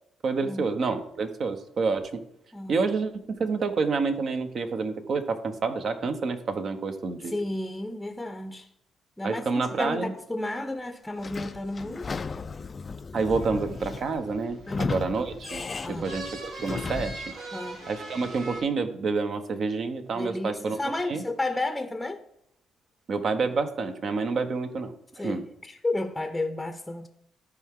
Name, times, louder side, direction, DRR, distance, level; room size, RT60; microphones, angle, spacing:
voice 1, 0.2-2.2 2.7-7.3 9.2-10.1 13.1-15.6 15.9-17.2 17.9-20.8 21.1-21.2 23.1-24.9 25.2-25.4, right 4 dB, 55° right, 1.0 m, -28 dB
voice 2, 2.5-2.9 7.2-8.7 9.2-12.1 14.7-15.0 15.8-16.2 17.5-17.9 20.1-22.2 25.1-27.1, left 2 dB, 10° left, 0.7 m, -32 dB
Sliding door / Squeak, 11.2-17.3, left 4 dB, 35° left, 0.3 m, -35 dB
sound 1, 13.4-18.6, right 2 dB, 75° right, 2.4 m, -42 dB
13.5 x 4.7 x 3.7 m
cardioid pair, 90°, 0 cm